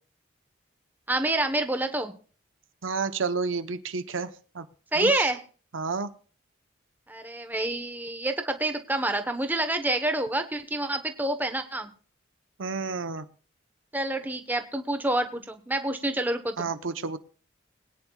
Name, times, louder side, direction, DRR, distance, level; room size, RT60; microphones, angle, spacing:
voice 1, 1.1-2.1 4.9-5.4 7.1-11.9 13.9-16.5, right 1 dB, 10° right, 7 dB, 1.0 m, -27 dB
voice 2, 2.8-4.6 5.0-5.3 5.7-6.1 12.6-13.2 16.6-17.2, right 4 dB, 80° right, 11 dB, 0.8 m, -30 dB
22.0 x 10.0 x 2.3 m, 0.40 s
head